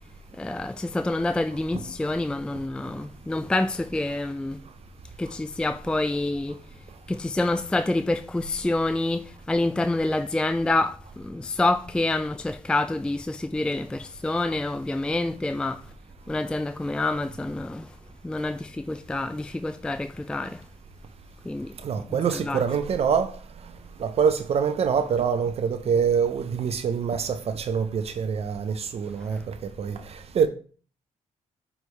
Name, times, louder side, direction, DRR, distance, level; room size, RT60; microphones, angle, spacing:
voice 1, 0.3-4.6 5.2-6.8 7.1-15.9 16.3-18.0 18.2-20.6 21.4-21.7 22.1-22.6 29.2-29.4, left 2 dB, 5° left, 0.3 m, -27 dB
voice 2, 21.8-23.3 24.0-30.0 30.3-30.5, right 6 dB, 55° right, 0.6 m, -25 dB
9.0 x 3.3 x 3.2 m
cardioid pair, 75°, 13 cm